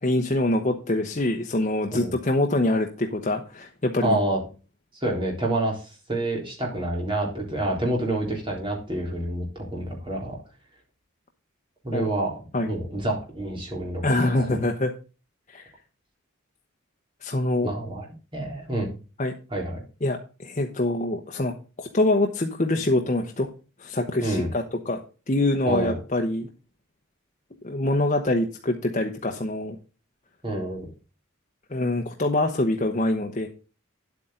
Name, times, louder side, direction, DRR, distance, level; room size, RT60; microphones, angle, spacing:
voice 1, 0.0-4.2 11.9-12.1 12.5-12.7 14.0-14.9 15.5-15.7 17.2-17.7 19.2-19.3 20.0-23.5 23.8-25.0 25.3-26.5 27.6-29.8 31.7-33.5, left 2 dB, 35° left, 3 dB, 0.9 m, -25 dB
voice 2, 4.0-4.4 5.0-10.4 11.8-12.3 12.6-14.0 14.4-14.6 17.6-18.0 18.3-19.0 19.5-19.8 24.2-24.5 25.7-26.0 30.4-30.9, right 1 dB, 25° right, -2 dB, 3.7 m, -28 dB
10.0 x 8.4 x 3.8 m, 0.34 s
head